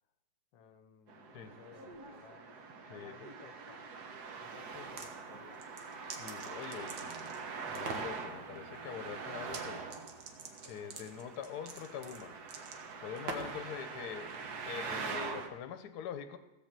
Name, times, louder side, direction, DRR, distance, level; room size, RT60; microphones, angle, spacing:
voice 1, 0.5-2.5 2.9-3.9 4.4-5.7, left 8 dB, 80° left, 10 dB, 1.5 m, -58 dB
Traffic noise roadway noise, 1.1-15.5, right 4 dB, 60° right, 1.5 m, -44 dB
voice 2, 2.9-3.3 6.1-7.2 7.7-9.8 10.6-12.4 13.0-14.3 14.6-16.4, left 8 dB, 65° left, 9 dB, 1.3 m, -44 dB
sound 1, 4.7-5.1 5.6-7.4 7.7-8.1 9.4-9.6 9.9-13.6, right 4 dB, 90° right, 1.9 m, -44 dB
15.0 x 5.8 x 7.4 m, 1.0 s
omnidirectional pair, 2.0 m